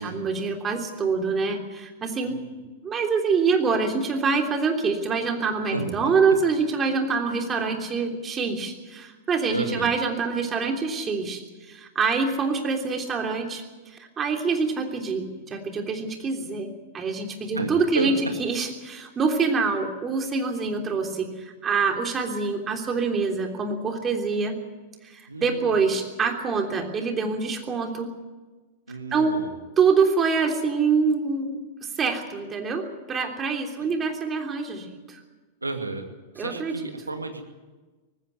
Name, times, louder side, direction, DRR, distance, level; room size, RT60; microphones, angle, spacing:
voice 1, 0.0-2.4 2.8-16.7 16.9-18.1 18.4-24.5 25.0-28.1 29.1-29.4 29.8-31.6 32.0-32.8 33.1-35.2 36.4-36.7, right 5 dB, 25° right, 4 dB, 3.3 m, -25 dB
voice 2, 5.7-6.1 9.5-9.9 17.6-18.1 25.3-25.8 28.9-29.5 35.6-36.1 36.3-37.4, right 3 dB, 90° right, 6 dB, 2.3 m, -31 dB
19.5 x 15.5 x 9.5 m, 1.3 s
figure-of-eight pair, 95°, 0 cm